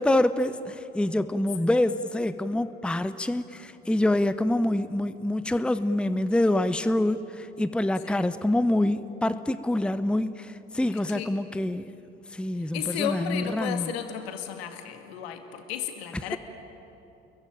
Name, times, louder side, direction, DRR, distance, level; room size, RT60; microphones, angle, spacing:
voice 1, 0.0-11.9 12.3-13.9, left 1 dB, 5° left, 13 dB, 0.9 m, -26 dB
voice 2, 10.9-11.3 12.6-16.4, left 9 dB, 70° left, 6 dB, 2.3 m, -34 dB
30.0 x 22.5 x 8.9 m, 3.0 s
figure-of-eight pair, 55°, 32 cm